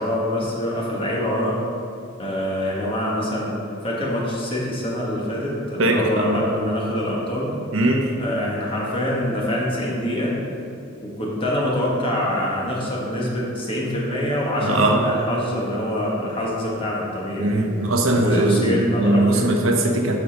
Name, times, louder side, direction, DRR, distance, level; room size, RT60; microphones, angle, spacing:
voice 1, 0.0-1.6 2.2-3.5 3.8-7.5 8.2-10.4 11.0-17.6 18.2-19.5, left 1 dB, 25° left, -4 dB, 1.6 m, -25 dB
voice 2, 5.8-6.4 7.7-8.1 14.6-15.1 17.4-20.2, right 1 dB, 70° right, 2 dB, 1.0 m, -20 dB
7.6 x 5.4 x 5.2 m, 2.3 s
head